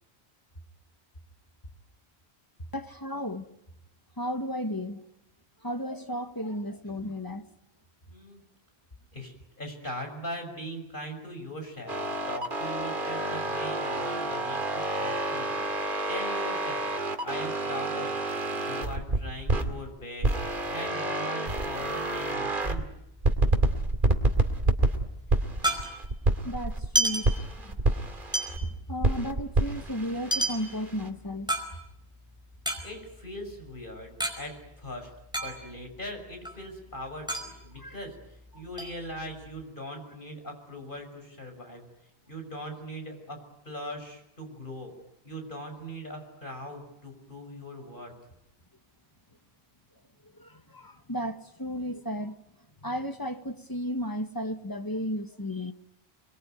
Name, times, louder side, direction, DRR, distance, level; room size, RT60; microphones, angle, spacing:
voice 1, 2.7-3.5 4.2-5.0 5.6-7.5 26.4-27.3 27.6-27.8 28.9-31.5 37.8-38.0 38.5-38.6 50.2-52.4 52.8-55.7, equal, 20° left, 1.4 m, -34 dB
voice 2, 8.1-8.4 9.1-12.0 12.3-16.9 17.2-22.9 25.6-25.9 28.6-28.7 32.8-35.1 35.4-38.2 38.5-41.8 42.3-43.4 43.6-44.9 45.2-48.1, equal, 50° left, 6.5 m, -40 dB
sound 1, 11.9-19.7 20.2-22.8 23.2-26.9 27.2-28.7 29.0-31.1, right 2 dB, 50° right, 2.6 m, -28 dB
sound 2, 21.7-23.3 23.6-23.7 23.9-26.3 26.7-27.9 28.3-32.1 32.5-34.4 34.6-34.7 35.0-36.0 36.3-38.4 38.8-39.6, right 1 dB, 5° right, 4.9 m, -32 dB
29.0 x 22.0 x 9.3 m
omnidirectional pair, 1.1 m